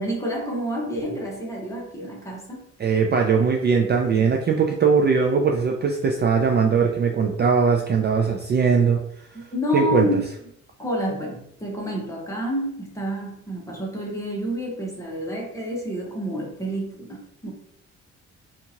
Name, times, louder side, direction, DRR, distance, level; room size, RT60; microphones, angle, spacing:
voice 1, 0.0-2.6 9.3-10.2 10.8-17.5, equal, 10° left, -2 dB, 0.9 m, -29 dB
voice 2, 2.8-9.0 9.7-10.1, right 5 dB, 35° right, 1 dB, 0.4 m, -20 dB
2.7 x 2.5 x 2.7 m, 0.71 s
cardioid pair, 90°, 30 cm